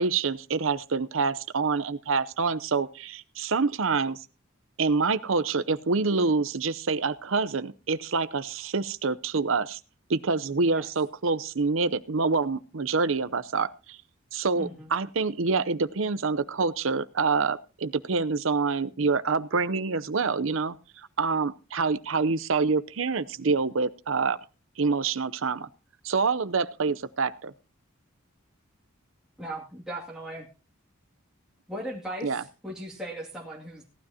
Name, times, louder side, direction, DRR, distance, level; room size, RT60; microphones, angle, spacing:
voice 1, 0.0-4.2 4.8-9.8 10.1-14.0 14.3-20.8 21.2-24.4 24.8-25.7 26.0-27.5 32.2-32.4, right 4 dB, 65° right, 15 dB, 0.7 m, -26 dB
voice 2, 14.5-14.9 29.4-30.5 31.7-33.8, right 1 dB, 5° right, -5 dB, 2.4 m, -38 dB
17.5 x 12.5 x 2.9 m, 0.33 s
head